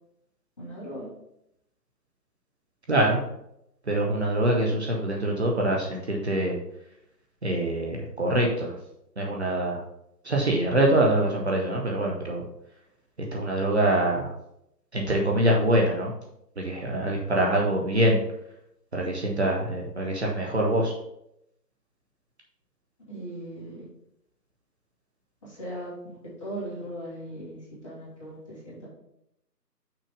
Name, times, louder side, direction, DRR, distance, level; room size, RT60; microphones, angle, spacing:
voice 1, 0.6-1.1 23.1-23.9 25.4-28.9, right 1 dB, 20° left, -7 dB, 1.6 m, -38 dB
voice 2, 2.9-3.2 3.9-6.5 7.4-8.8 9.2-9.8 10.2-12.4 13.3-14.3 14.9-16.1 16.6-18.2 18.9-21.0, right 1 dB, 40° right, -1 dB, 1.0 m, -24 dB
6.0 x 4.2 x 5.0 m, 0.79 s
figure-of-eight pair, 165°, 50 cm